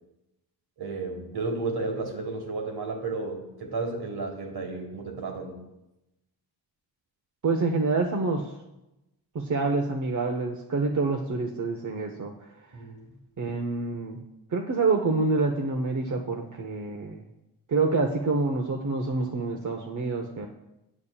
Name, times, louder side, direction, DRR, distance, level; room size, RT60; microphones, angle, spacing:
voice 1, 0.8-5.6 12.7-13.1, right 3 dB, 60° right, 3 dB, 1.6 m, -32 dB
voice 2, 7.4-8.5 9.3-12.3 13.4-14.2 14.5-17.2 17.7-20.5, right 3 dB, 40° right, 2 dB, 0.8 m, -27 dB
8.3 x 7.0 x 2.3 m, 0.93 s
supercardioid pair, 45°, 44 cm